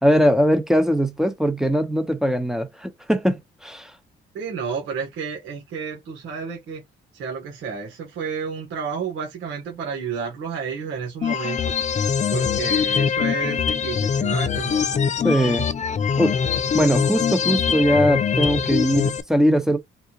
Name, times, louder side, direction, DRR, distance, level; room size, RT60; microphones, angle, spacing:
voice 1, 0.0-3.9 15.2-15.7 16.2-16.4 16.7-19.8, equal, ahead, 1.0 m, -20 dB
voice 2, 4.3-6.8 7.2-11.8 12.3-14.9, right 6 dB, 85° right, 1.5 m, -31 dB
sound 1, 11.2-19.2, left 7 dB, 35° left, 0.5 m, -23 dB
3.8 x 2.4 x 3.0 m
cardioid pair, 90°, 20 cm